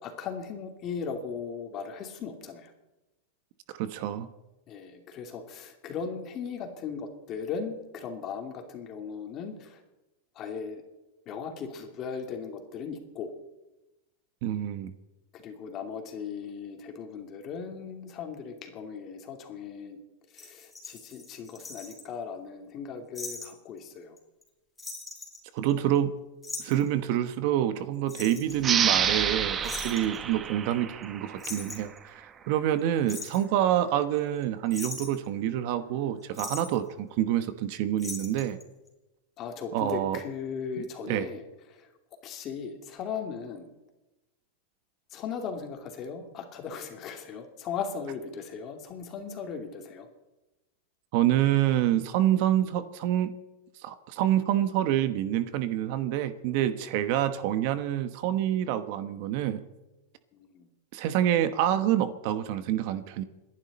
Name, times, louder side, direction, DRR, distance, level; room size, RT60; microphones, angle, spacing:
voice 1, 0.0-2.7 4.7-9.8 10.3-10.8 11.3-13.3 15.3-20.0 20.3-24.1 39.4-41.9 42.2-43.7 45.1-50.1 56.8-56.9 60.3-60.7, left 6 dB, 30° left, 4 dB, 2.7 m, -38 dB
voice 2, 3.8-4.3 14.4-14.9 25.5-26.3 26.6-38.6 39.7-40.2 41.1-41.3 51.1-53.3 53.8-59.6 60.9-63.2, right 11 dB, 50° right, 12 dB, 1.1 m, -27 dB
sound 1, 20.4-22.0 23.1-23.5 23.8-23.9 24.2-24.5 24.8-26.0 26.4-26.9 28.1-28.6 29.6-30.2 31.0-31.1 31.4-32.0 32.8-33.4 34.2-34.4 34.7-35.3 36.3-36.7 38.0-38.6 38.9-39.0, left 3 dB, 10° left, 3.6 m, -40 dB
sound 2, 28.6-31.9, right 7 dB, 20° right, 0.9 m, -28 dB
28.0 x 11.0 x 4.3 m, 1.0 s
supercardioid pair, 150°, 0 cm